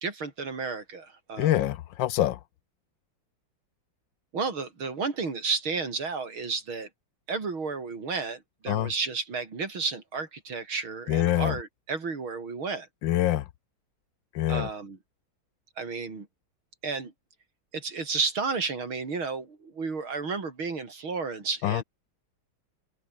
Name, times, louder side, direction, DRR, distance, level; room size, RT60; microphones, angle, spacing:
voice 1, 0.0-1.7 4.3-6.9 7.3-12.9 14.5-15.0 15.8-16.3 16.8-17.1 17.7-21.8, right 4 dB, 85° right, 4.6 m, -32 dB
voice 2, 1.4-2.4 8.7-8.9 11.1-11.6 13.0-13.4 14.3-14.7 21.6-21.8, left 13 dB, 70° left, 1.4 m, -25 dB
open air
omnidirectional pair, 2.2 m